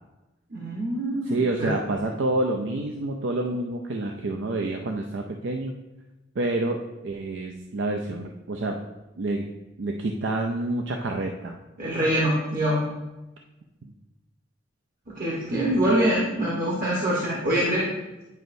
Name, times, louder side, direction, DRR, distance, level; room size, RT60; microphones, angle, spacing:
voice 1, 0.5-1.7 11.8-12.8 15.1-17.9, right 1 dB, 50° right, -6 dB, 1.2 m, -24 dB
voice 2, 1.3-5.7 6.4-8.8 9.2-9.5 9.8-11.6, right 2 dB, 65° right, 2 dB, 0.5 m, -28 dB
9.5 x 5.1 x 2.6 m, 1.1 s
head